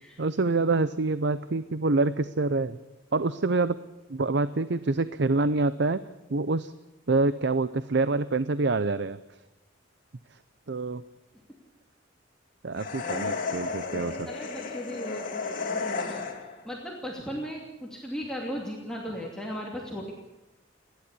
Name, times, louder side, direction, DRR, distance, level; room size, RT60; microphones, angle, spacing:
voice 1, 0.2-2.8 3.1-3.8 4.1-6.0 6.3-6.7 7.1-9.4 10.3-10.4 10.7-11.0 12.6-14.3, right 3 dB, 60° right, 14 dB, 0.7 m, -26 dB
sound 1, 12.8-16.6, left 4 dB, 45° left, 3.0 m, -33 dB
voice 2, 14.2-16.2 16.6-20.1, equal, 5° left, -3 dB, 2.7 m, -37 dB
30.0 x 11.5 x 8.5 m, 1.0 s
head